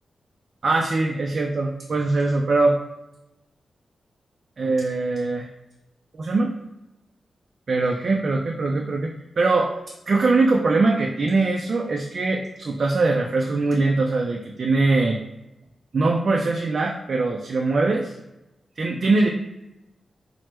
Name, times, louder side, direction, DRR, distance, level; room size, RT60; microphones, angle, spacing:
voice 1, 0.6-2.8 4.6-5.5 6.2-6.5 7.7-9.7 10.1-15.2 15.9-18.1 18.8-19.3, right 3 dB, 60° right, 1 dB, 0.3 m, -22 dB
3.0 x 2.0 x 3.4 m, 0.92 s
cardioid pair, 60°, 0 cm